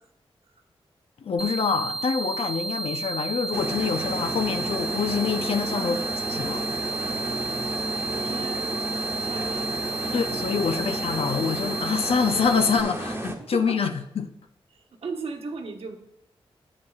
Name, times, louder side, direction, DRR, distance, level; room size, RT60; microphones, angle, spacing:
voice 1, 1.2-6.0 6.3-6.6 10.1-14.3, left 6 dB, 80° left, 0.6 m, -26 dB
sound 1, 1.4-12.8, right 3 dB, 5° right, 0.3 m, -32 dB
sound 2, 3.5-13.4, right 1 dB, 25° right, 1.2 m, -32 dB
voice 2, 5.7-6.1 7.0-7.6 8.1-8.7 9.1-9.7 10.0-10.1 10.7-10.8 13.5-13.9 14.7-16.0, right 4 dB, 75° right, 1.2 m, -37 dB
10.0 x 8.5 x 2.4 m
wide cardioid pair, 95°, 10 cm